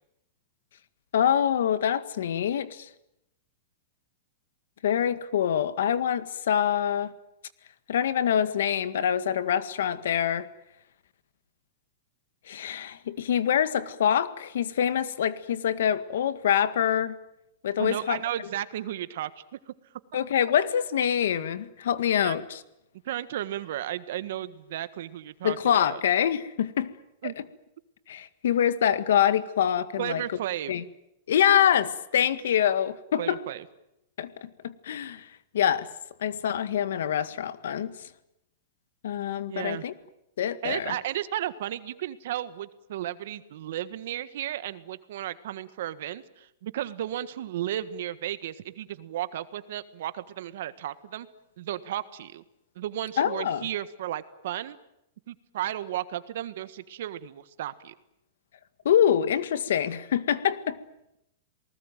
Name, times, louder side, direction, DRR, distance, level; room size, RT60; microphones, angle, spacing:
voice 1, 1.1-2.9 4.8-7.1 7.9-10.5 12.5-17.2 17.6-18.2 20.1-22.6 25.4-26.9 28.1-30.2 30.7-30.8 31.3-33.4 34.2-35.3 35.5-35.9 36.2-37.9 39.0-39.9 40.4-41.0 53.2-53.7 58.9-60.8, left 9 dB, 70° left, 13 dB, 1.8 m, -25 dB
voice 2, 17.8-19.7 22.2-22.4 23.0-26.0 27.2-27.3 30.0-30.7 33.2-33.6 39.5-39.8 40.6-51.3 51.6-52.4 52.7-54.8 55.3-57.9, right 12 dB, 55° right, 14 dB, 1.6 m, -34 dB
28.0 x 19.5 x 9.1 m, 0.83 s
supercardioid pair, 170°, 0 cm